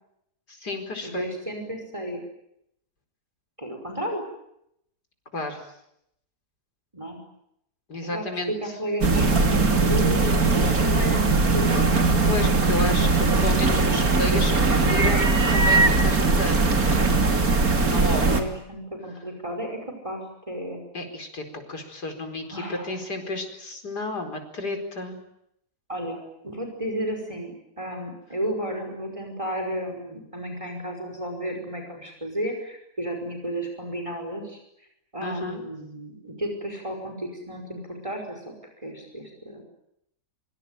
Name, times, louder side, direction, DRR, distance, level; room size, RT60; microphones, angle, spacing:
voice 1, 0.5-1.3 5.3-5.6 7.9-8.5 12.2-14.5 14.8-16.7 17.9-18.3 20.9-25.2 35.2-35.6, left 2 dB, 75° left, 6 dB, 5.3 m, -31 dB
voice 2, 1.0-2.2 3.6-4.2 6.9-7.2 8.0-11.7 17.7-20.8 22.5-23.0 25.9-34.6 35.1-39.6, equal, 20° right, 4 dB, 5.5 m, -33 dB
sound 1, 9.0-18.4, right 3 dB, 60° right, 3.4 m, -20 dB
26.0 x 24.5 x 9.3 m, 0.77 s
omnidirectional pair, 1.7 m